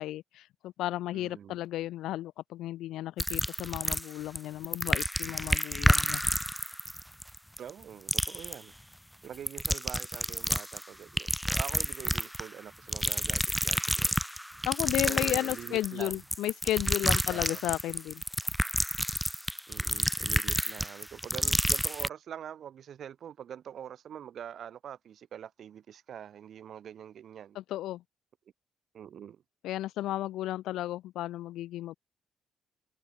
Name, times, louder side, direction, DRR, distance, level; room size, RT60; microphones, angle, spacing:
voice 1, 0.0-6.2 14.6-18.2 27.5-28.0 29.6-31.9, left 14 dB, 85° left, 1.3 m, -33 dB
voice 2, 1.1-1.6 7.6-8.7 9.2-14.2 15.0-16.2 17.3-17.6 19.7-27.6 28.9-29.4, right 9 dB, 65° right, 7.1 m, -44 dB
sound 1, 3.2-4.4 4.6-7.8 8.1-8.6 9.3-10.8 11.2-12.5 12.9-22.1, equal, ahead, 1.4 m, -29 dB
cardioid pair, 90°, 0 cm